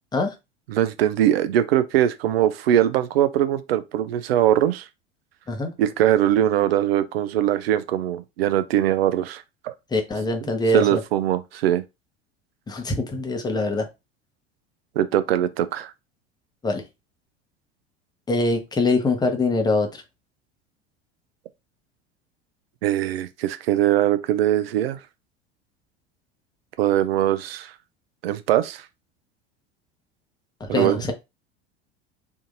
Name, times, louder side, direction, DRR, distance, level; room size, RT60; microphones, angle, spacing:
voice 1, 0.7-4.9 5.8-9.7 10.4-11.8 15.0-15.9 22.8-25.0 26.8-27.7 28.2-28.9 30.7-31.0, right 12 dB, 60° right, 0.4 m, -21 dB
voice 2, 9.9-11.0 12.7-13.9 16.6-16.8 18.3-19.9 30.6-31.1, left 2 dB, 10° left, 0.8 m, -23 dB
3.6 x 2.6 x 2.6 m
figure-of-eight pair, 75°, 34 cm